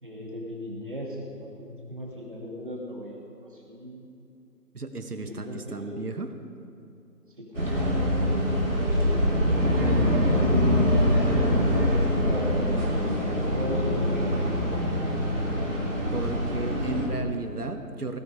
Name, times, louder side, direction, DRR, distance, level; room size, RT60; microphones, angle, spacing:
voice 1, 0.0-4.2 5.2-6.0 7.4-8.0 9.5-12.8 13.2-14.5, equal, 35° right, -2 dB, 2.3 m, -38 dB
voice 2, 4.7-6.3 9.8-10.1 16.1-18.2, right 2 dB, 70° right, 8 dB, 1.4 m, -34 dB
sound 1, 7.5-17.1, equal, 50° right, 3.1 m, -24 dB
19.0 x 10.0 x 4.9 m, 2.8 s
figure-of-eight pair, 175°, 47 cm